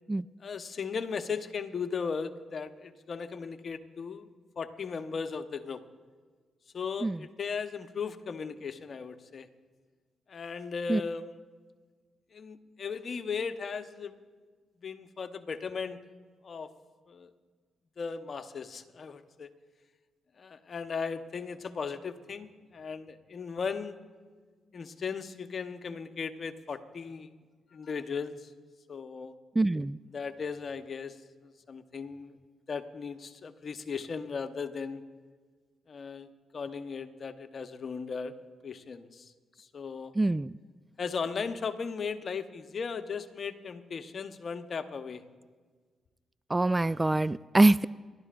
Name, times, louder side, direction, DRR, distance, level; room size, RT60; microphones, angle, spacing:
voice 1, 0.4-4.3 4.6-5.8 6.7-9.5 10.3-11.4 12.3-14.1 14.8-16.0 16.4-16.7 17.1-17.3 18.0-19.5 20.4-24.0 24.7-27.4 27.7-28.5 28.9-29.3 30.1-31.2 31.4-32.4 32.7-35.0 35.9-38.3 38.6-39.3 39.6-40.1 41.0-45.2, left 5 dB, 55° left, 8 dB, 1.0 m, -37 dB
voice 2, 29.6-30.0 40.2-40.5 46.5-47.8, right 2 dB, 25° right, 19 dB, 0.3 m, -24 dB
29.0 x 12.5 x 2.5 m, 1.5 s
hypercardioid pair, 45°, 0 cm